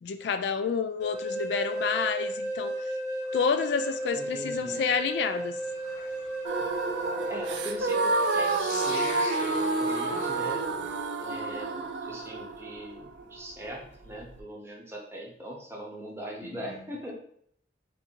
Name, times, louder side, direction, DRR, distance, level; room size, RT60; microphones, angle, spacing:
voice 1, 0.0-2.7 3.3-5.6, left 6 dB, 70° left, 10 dB, 0.3 m, -29 dB
sound 1, 1.0-8.6, right 1 dB, 20° left, 0.9 m, -34 dB
sound 2, 3.2-11.4 13.6-13.7, left 2 dB, 45° left, 0.9 m, -44 dB
voice 2, 4.1-4.8 5.4-5.5 6.6-6.7 7.3-10.7 11.2-17.1, right 1 dB, 15° right, -1 dB, 0.7 m, -41 dB
sound 3, 6.4-14.4, right 3 dB, 80° right, 0.4 m, -29 dB
3.6 x 2.6 x 4.4 m, 0.67 s
head